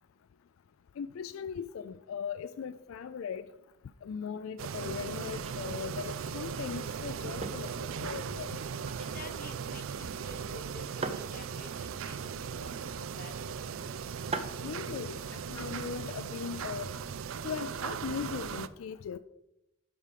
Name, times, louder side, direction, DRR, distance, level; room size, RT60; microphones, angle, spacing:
voice 1, 1.0-3.5 4.0-8.6 14.6-16.9 17.4-19.2, left 7 dB, 80° left, 0.4 m, -39 dB
sound 1, 4.6-18.7, right 6 dB, 75° right, 0.4 m, -38 dB
sound 2, 5.0-16.4, right 3 dB, 30° right, 0.7 m, -46 dB
voice 2, 9.1-12.8 13.2-13.3 13.6-14.0, left 3 dB, 45° left, 1.0 m, -50 dB
12.0 x 5.0 x 5.0 m
head